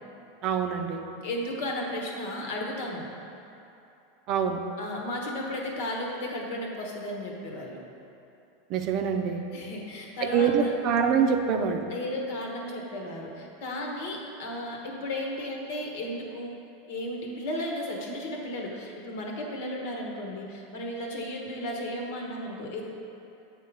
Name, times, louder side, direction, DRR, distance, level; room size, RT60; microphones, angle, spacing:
voice 1, 0.4-1.0 4.3-4.6 8.7-9.5 10.2-11.9, right 6 dB, 50° right, 5 dB, 0.5 m, -25 dB
voice 2, 1.2-3.1 4.8-7.8 9.5-10.7 11.9-16.6 16.9-22.8, left 1 dB, 70° left, 0 dB, 1.2 m, -34 dB
8.1 x 3.7 x 4.8 m, 2.8 s
hypercardioid pair, 100°, 0 cm